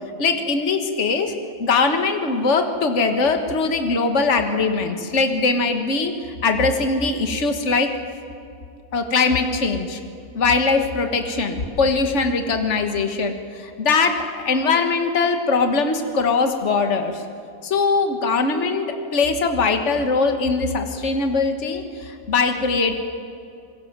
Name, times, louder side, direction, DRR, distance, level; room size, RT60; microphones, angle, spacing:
voice 1, 0.2-1.3 1.6-6.1 6.4-8.0 8.9-10.0 10.3-17.3 17.6-18.9 19.1-22.9, left 4 dB, 50° left, 6 dB, 1.9 m, -21 dB
27.0 x 22.0 x 7.5 m, 2.5 s
omnidirectional pair, 1.6 m